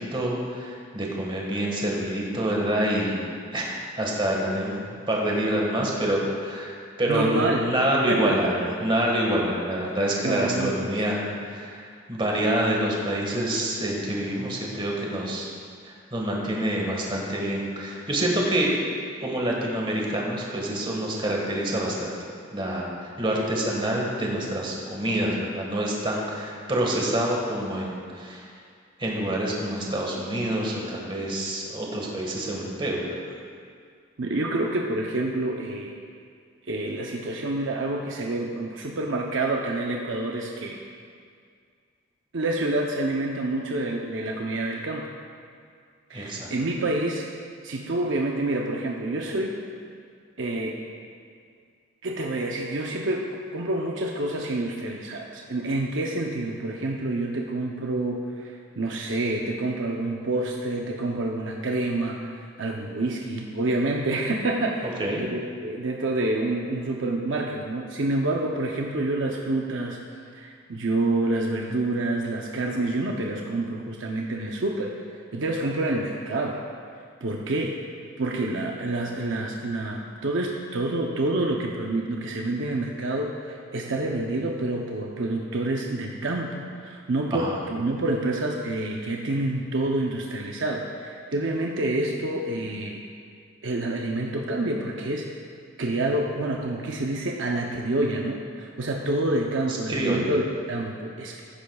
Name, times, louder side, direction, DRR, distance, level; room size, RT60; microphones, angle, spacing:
voice 1, 0.0-3.3 3.5-15.5 15.8-18.7 19.2-22.1 22.5-28.5 29.0-33.0 46.1-46.5 64.8-65.2 87.3-87.6 99.7-100.3, right 1 dB, 25° right, -2 dB, 1.6 m, -27 dB
voice 2, 7.1-7.6 8.1-8.5 10.2-11.5 34.2-36.0 36.7-40.8 42.3-45.1 46.1-47.3 47.6-49.6 50.4-50.8 52.0-53.3 53.5-62.3 62.6-64.9 65.2-70.0 70.3-74.9 75.3-76.6 77.2-77.8 78.2-93.0 93.6-95.3 95.8-101.4, right 2 dB, 65° right, 0 dB, 0.7 m, -28 dB
15.0 x 10.5 x 2.3 m, 2.2 s
head